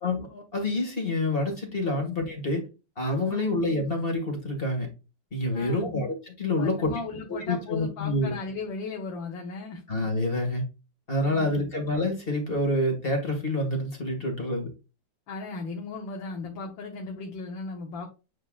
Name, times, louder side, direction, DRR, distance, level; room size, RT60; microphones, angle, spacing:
voice 1, 0.0-2.6 3.0-4.9 5.3-6.9 7.5-8.3 9.9-10.6 11.1-14.7, left 1 dB, 30° left, 2 dB, 2.1 m, -27 dB
voice 2, 3.2-3.6 5.5-5.9 6.6-9.8 11.2-11.7 15.3-18.1, left 3 dB, 80° left, 1 dB, 1.8 m, -37 dB
8.8 x 4.5 x 2.4 m, 0.30 s
omnidirectional pair, 2.0 m